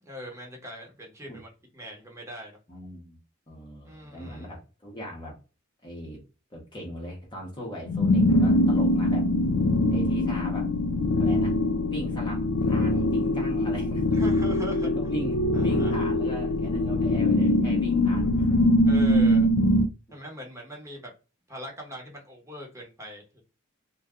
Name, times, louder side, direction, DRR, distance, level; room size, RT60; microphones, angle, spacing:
voice 1, 0.0-2.6 3.8-4.5 14.1-14.9 15.5-16.0 18.9-19.5 20.1-21.1 21.5-23.4, equal, 15° right, 0.9 m, -41 dB
voice 2, 2.7-3.2 3.5-5.4 5.8-6.2 6.5-9.3 9.9-10.7 11.2-11.6 11.9-14.1 14.8-18.5, equal, 20° left, 0.9 m, -38 dB
sound 1, 7.9-19.9, left 1 dB, 70° left, 0.4 m, -23 dB
2.7 x 2.2 x 3.5 m
head